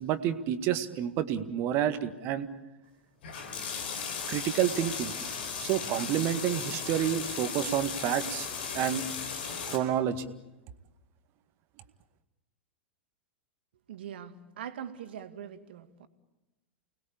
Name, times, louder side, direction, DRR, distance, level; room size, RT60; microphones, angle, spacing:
voice 1, 0.0-2.5 4.3-5.1 5.6-8.5 8.7-9.0 9.7-10.3, right 10 dB, 40° right, 11 dB, 1.9 m, -29 dB
sound 1, 3.2-9.8, left 6 dB, 60° left, 5.0 m, -36 dB
voice 2, 13.9-16.1, right 9 dB, 60° right, 10 dB, 2.2 m, -42 dB
30.0 x 20.5 x 8.6 m, 1.0 s
figure-of-eight pair, 95°, 6 cm